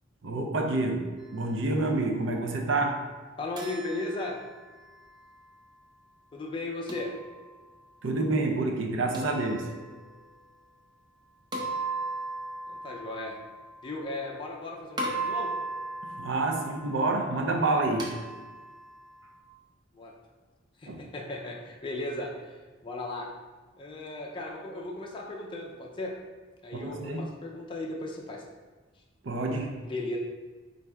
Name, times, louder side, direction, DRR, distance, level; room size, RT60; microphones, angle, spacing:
voice 1, 0.2-3.1 8.0-9.7 16.0-18.2 20.9-21.0 26.7-27.3 29.2-29.8, right 2 dB, 70° right, 2 dB, 0.6 m, -28 dB
voice 2, 3.4-4.4 6.3-7.1 12.7-13.4 13.8-15.5 19.9-20.1 20.8-23.3 23.8-26.1 26.6-28.4 29.8-30.2, left 2 dB, 25° left, -1 dB, 0.4 m, -36 dB
sound 1, 3.6-5.7 6.9-7.9 9.1-10.3 11.5-14.6 15.0-19.4, right 2 dB, 20° right, 0.5 m, -38 dB
4.4 x 2.6 x 3.4 m, 1.3 s
head